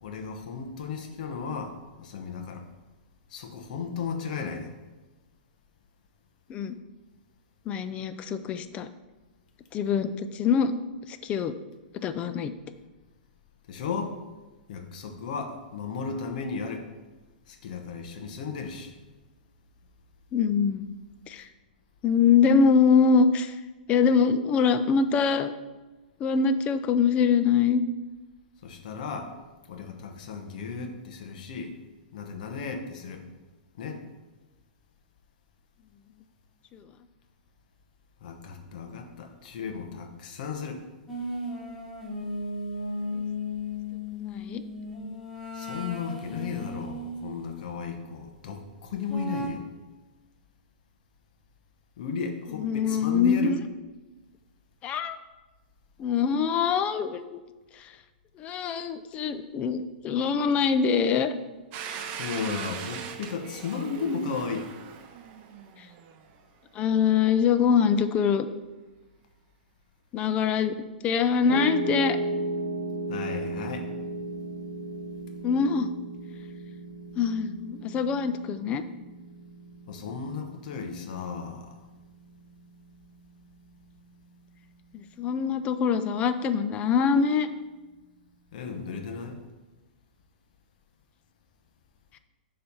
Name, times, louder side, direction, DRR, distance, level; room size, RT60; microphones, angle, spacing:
voice 1, 0.0-2.6 3.3-4.7 13.7-14.2 14.7-16.8 17.5-18.9 28.6-29.3 29.7-31.7 32.1-33.2 33.8-34.0 38.2-40.8 45.5-49.6 52.0-53.6 62.2-64.7 73.1-73.9 79.9-81.8 88.5-89.4, left 5 dB, 60° left, 5 dB, 1.0 m, -34 dB
voice 2, 7.7-8.9 9.7-10.7 11.1-11.5 12.0-12.5 20.3-20.9 21.3-21.5 22.0-23.6 23.9-25.5 26.2-27.8 36.7-36.8 43.1-43.2 44.2-44.6 52.5-53.6 54.8-55.2 56.0-57.4 57.7-57.9 58.4-61.3 66.7-68.5 70.1-70.7 71.0-72.2 75.4-75.9 77.2-78.8 84.9-87.5, left 6 dB, 25° left, 11 dB, 0.4 m, -24 dB
sound 1, 41.1-47.7 49.1-49.5, left 1 dB, 5° left, 1.2 m, -35 dB
Domestic sounds home sounds, 61.7-66.4, right 7 dB, 35° right, 0.6 m, -40 dB
Piano, 71.5-83.7, right 1 dB, 80° right, 1.1 m, -35 dB
6.9 x 3.3 x 5.4 m, 1.2 s
hypercardioid pair, 135°, 5 cm